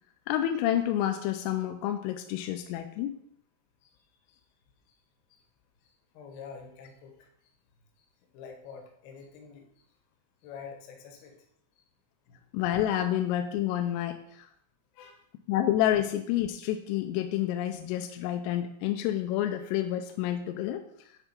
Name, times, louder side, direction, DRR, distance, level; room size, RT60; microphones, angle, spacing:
voice 1, 0.3-3.1 12.5-14.5 15.5-20.8, left 12 dB, 85° left, 6 dB, 3.2 m, -29 dB
voice 2, 5.8-7.5 8.0-8.1 8.3-9.8 10.4-11.4 12.3-12.5 14.9-15.2, left 6 dB, 70° left, 3 dB, 2.6 m, -47 dB
9.9 x 4.7 x 5.1 m, 0.71 s
omnidirectional pair, 6.0 m